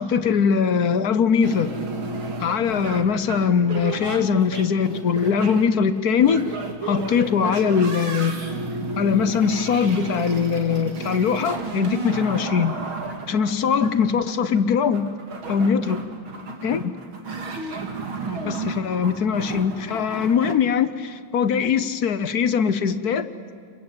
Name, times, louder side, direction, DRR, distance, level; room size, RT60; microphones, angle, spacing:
voice 1, 0.0-1.7 2.4-6.4 6.8-8.4 9.0-12.8 13.3-15.1 15.5-16.0 16.6-16.9 18.5-23.3, left 6 dB, 55° left, 12 dB, 1.3 m, -21 dB
sound 1, 1.4-20.5, right 3 dB, 85° right, 3.2 m, -32 dB
29.5 x 22.5 x 8.8 m, 2.2 s
omnidirectional pair, 2.2 m